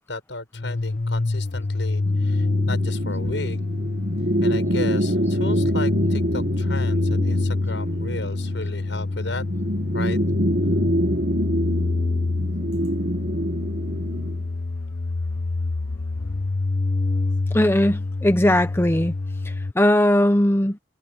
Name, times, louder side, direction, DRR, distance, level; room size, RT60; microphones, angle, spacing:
voice 1, 0.0-3.6 4.4-9.4 9.9-10.2, left 2 dB, 80° left, 6.9 m, -34 dB
sound 1, 0.5-19.7, left 3 dB, 50° left, 0.8 m, -26 dB
sound 2, 2.0-14.4, right 1 dB, 55° right, 1.4 m, -26 dB
voice 2, 17.5-19.1 19.4-20.8, left 1 dB, 15° left, 0.9 m, -19 dB
head